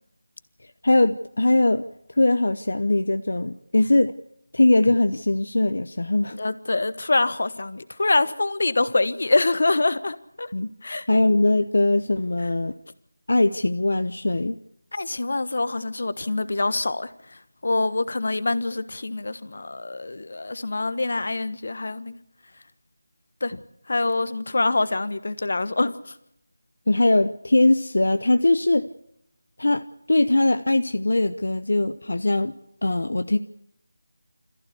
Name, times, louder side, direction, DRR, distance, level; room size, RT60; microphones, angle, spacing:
voice 1, 0.8-1.8 2.2-4.1 4.5-6.4 10.5-10.7 11.1-12.7 13.3-14.6 26.9-28.9 29.6-32.5 32.8-33.4, left 2 dB, 70° left, 0.9 m, -21 dB
voice 2, 6.3-10.5 10.8-11.1 14.9-17.1 17.6-22.2 23.4-23.6 23.9-25.9, left 2 dB, 55° left, 1.3 m, -25 dB
26.5 x 15.0 x 8.3 m
figure-of-eight pair, 175°, 0 cm